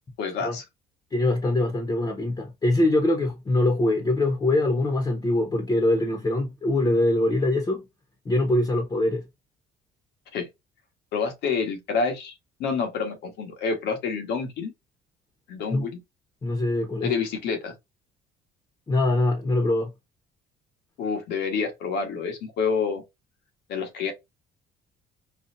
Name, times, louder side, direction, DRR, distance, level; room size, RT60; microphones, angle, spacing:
voice 1, 0.2-0.6 10.3-10.5 11.1-12.3 12.6-14.7 15.5-16.0 17.0-17.7 21.0-23.0 23.7-24.1, left 5 dB, 80° left, 1.4 m, -28 dB
voice 2, 1.1-7.8 8.2-9.2 15.7-15.9 16.4-17.1 18.9-19.9, left 1 dB, 25° left, 1.0 m, -23 dB
4.0 x 2.4 x 2.5 m
cardioid pair, 110°, 17 cm